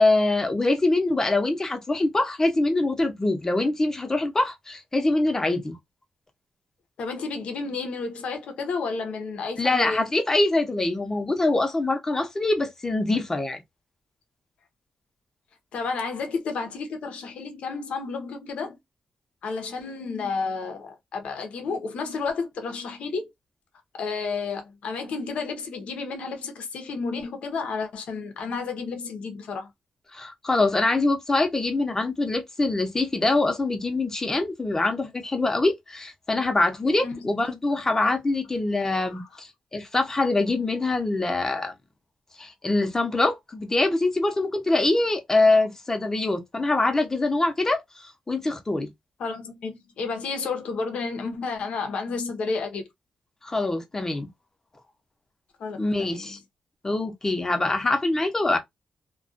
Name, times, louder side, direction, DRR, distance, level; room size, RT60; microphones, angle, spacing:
voice 1, 0.0-5.7 9.6-13.6 30.1-41.7 42.4-48.9 53.4-54.3 55.8-56.4 56.8-58.6, left 2 dB, 25° left, 0.7 m, -24 dB
voice 2, 7.0-10.1 15.7-18.8 19.4-23.3 24.0-29.7 37.0-37.2 39.1-39.3 49.2-52.8 55.6-56.4, left 4 dB, 80° left, 0.7 m, -31 dB
2.3 x 2.3 x 2.5 m
cardioid pair, 85°, 2 cm